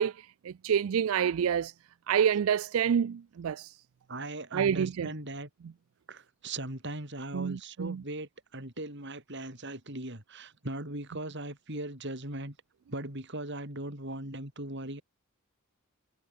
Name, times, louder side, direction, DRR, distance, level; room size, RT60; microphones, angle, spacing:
voice 1, 0.0-1.7 2.1-3.8 4.5-5.1 7.3-8.0, right 8 dB, 75° right, 0.4 m, -28 dB
voice 2, 4.1-5.5 6.1-12.6 12.9-15.0, right 1 dB, 55° right, 7.9 m, -39 dB
head